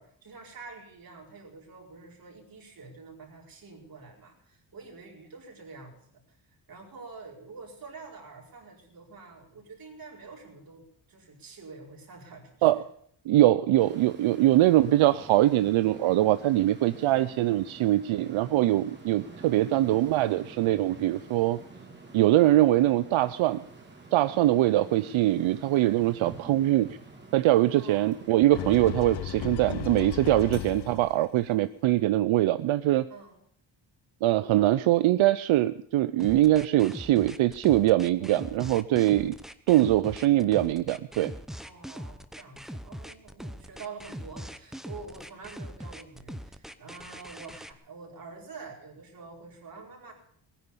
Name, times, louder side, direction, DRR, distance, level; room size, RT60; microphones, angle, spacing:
voice 1, 0.0-6.4 6.7-12.8 27.8-28.1 33.1-33.4 41.6-50.1, right 4 dB, 45° right, 0 dB, 4.8 m, -47 dB
voice 2, 13.3-21.6 22.1-23.6 24.1-27.0 27.3-33.0 34.2-39.4 39.7-41.3, right 15 dB, 85° right, 14 dB, 0.7 m, -23 dB
sound 1, 13.8-28.8, right 3 dB, 25° right, 2.9 m, -48 dB
sound 2, 28.5-31.2, left 13 dB, 55° left, 0.7 m, -35 dB
sound 3, 36.2-47.7, equal, ahead, 0.7 m, -41 dB
19.5 x 10.5 x 6.9 m, 0.63 s
wide cardioid pair, 155°, 47 cm